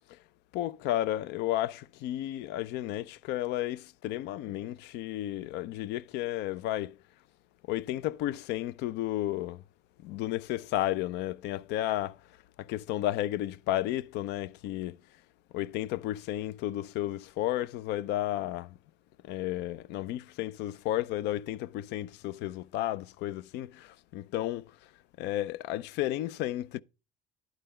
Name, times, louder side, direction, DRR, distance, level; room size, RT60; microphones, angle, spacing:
voice 1, 0.5-7.0 7.7-9.6 10.0-12.2 12.6-15.0 15.5-18.8 19.2-24.7 25.2-26.8, left 14 dB, 70° left, 0.5 m, -33 dB
11.0 x 3.9 x 5.5 m
cardioid pair, 135°, 18 cm